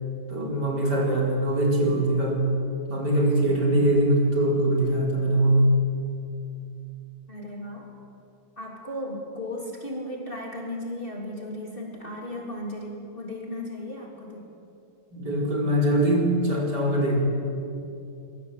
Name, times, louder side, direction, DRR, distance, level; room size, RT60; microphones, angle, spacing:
voice 1, 0.3-2.5 2.9-5.7 15.1-17.2, right 1 dB, 50° right, -1 dB, 5.0 m, -22 dB
voice 2, 7.3-7.9 8.6-14.5, left 1 dB, 25° left, 0 dB, 3.5 m, -35 dB
26.0 x 22.5 x 8.4 m, 2.6 s
omnidirectional pair, 2.4 m